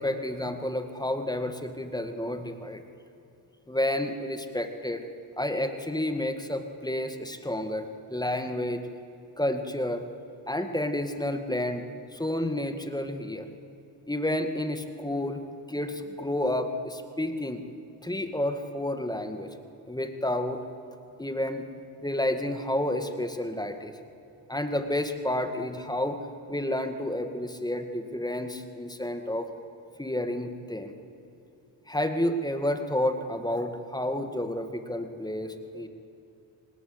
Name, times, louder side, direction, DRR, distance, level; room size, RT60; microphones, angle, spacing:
voice 1, 0.0-2.8 3.7-5.0 5.4-8.8 9.4-10.1 10.5-11.8 12.1-13.5 14.1-15.4 15.7-17.6 18.0-19.5 19.9-20.6 21.2-21.7 22.0-23.9 24.5-26.2 26.5-29.5 30.0-30.9 31.9-35.9, left 1 dB, 10° left, 7 dB, 2.0 m, -30 dB
26.0 x 19.0 x 8.1 m, 2.8 s
cardioid pair, 90°, 48 cm